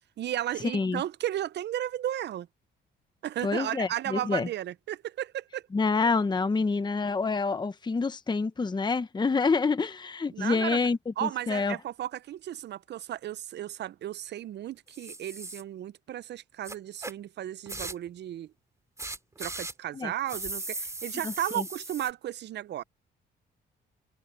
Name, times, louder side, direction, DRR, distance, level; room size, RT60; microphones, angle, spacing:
voice 1, 0.2-2.5 3.2-5.6 10.3-10.8 11.2-18.5 19.4-22.8, right 12 dB, 60° right, 0.6 m, -34 dB
voice 2, 3.4-4.5 5.7-11.7 19.9-20.1 21.2-21.6, left 4 dB, 20° left, 0.9 m, -27 dB
sound 1, 14.9-15.6 16.6-17.1 17.7-18.1 19.0-19.7 20.3-22.1, right 2 dB, 15° right, 2.7 m, -38 dB
cardioid pair, 90°, 20 cm